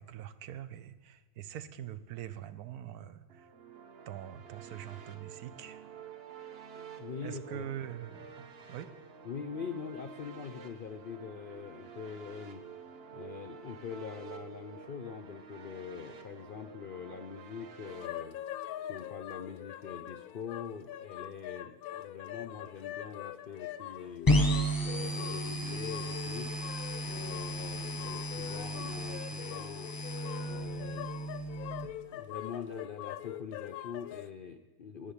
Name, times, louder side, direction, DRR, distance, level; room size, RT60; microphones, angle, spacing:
voice 1, 0.0-3.5 4.1-5.8 7.2-8.9, right 10 dB, 80° right, 12 dB, 1.2 m, -43 dB
sound 1, 3.3-18.1, right 7 dB, 50° right, 0.9 m, -50 dB
voice 2, 7.0-7.7 9.2-12.6 13.1-18.4 18.8-24.3 24.7-26.5 27.0-29.9 30.4-31.1 32.1-35.1, left 6 dB, 60° left, 7 dB, 0.5 m, -43 dB
sound 2, 17.9-34.3, left 12 dB, 80° left, 1.0 m, -43 dB
sound 3, 24.3-31.9, equal, 20° left, 0.7 m, -33 dB
10.5 x 9.9 x 8.2 m, 1.2 s
omnidirectional pair, 1.6 m